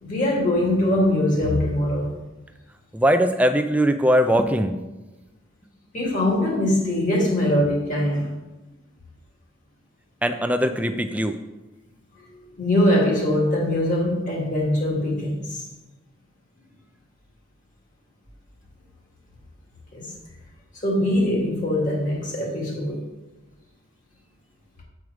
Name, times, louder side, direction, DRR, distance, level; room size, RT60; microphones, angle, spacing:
voice 1, 0.0-2.1 5.9-8.4 12.3-15.7 19.9-20.1 20.7-23.0, left 1 dB, 40° left, -3 dB, 1.9 m, -22 dB
voice 2, 2.9-4.7 10.2-11.4, equal, 5° right, 8 dB, 0.3 m, -20 dB
7.8 x 4.7 x 4.9 m, 1.1 s
head